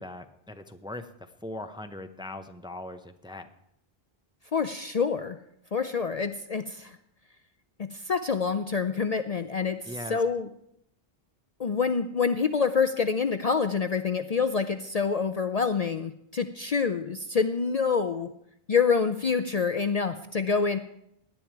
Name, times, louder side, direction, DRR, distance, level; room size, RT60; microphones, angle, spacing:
voice 1, 0.0-3.5 9.9-10.2, left 1 dB, 5° right, 8 dB, 0.7 m, -40 dB
voice 2, 4.5-5.4 5.7-7.0 7.8-10.5 11.6-18.3 18.7-20.8, left 5 dB, 45° left, 10 dB, 0.6 m, -27 dB
18.0 x 10.5 x 4.6 m, 0.75 s
omnidirectional pair, 1.0 m